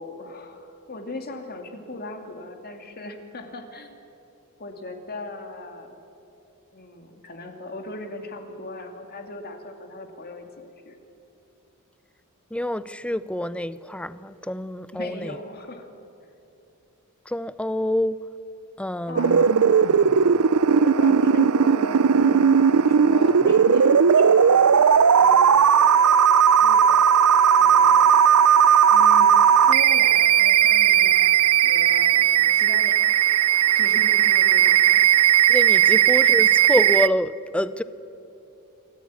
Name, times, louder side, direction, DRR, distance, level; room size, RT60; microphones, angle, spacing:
voice 1, 0.0-3.9 4.6-6.0 6.7-11.0 14.9-15.9 19.1-20.5 20.8-24.8 25.1-27.1 27.6-28.1 28.9-29.3 29.7-33.1 33.7-35.2 35.8-36.4, left 2 dB, 45° left, 2.4 m, -38 dB
voice 2, 12.5-15.4 17.3-18.2 18.8-19.4 35.5-37.8, left 1 dB, 5° left, 0.5 m, -27 dB
sound 1, 19.2-37.1, right 8 dB, 75° right, 0.5 m, -17 dB
26.0 x 14.5 x 9.6 m
head